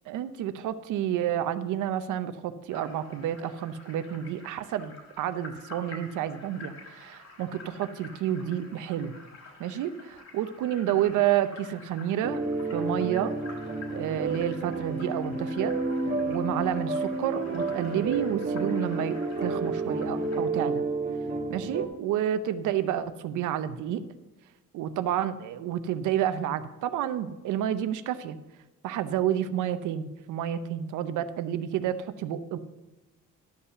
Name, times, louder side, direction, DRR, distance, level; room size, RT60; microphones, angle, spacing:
voice 1, 0.1-9.1 9.6-12.4 12.7-13.3 13.9-15.7 16.3-20.8 21.5-24.0 24.7-28.4 28.8-32.6, right 10 dB, 90° right, 12 dB, 0.8 m, -30 dB
sound 1, 2.7-20.4, left 3 dB, 60° left, 3.3 m, -49 dB
sound 2, 12.2-21.9, right 3 dB, 30° right, 1.6 m, -30 dB
11.5 x 5.6 x 6.6 m, 1.1 s
cardioid pair, 90°, 30 cm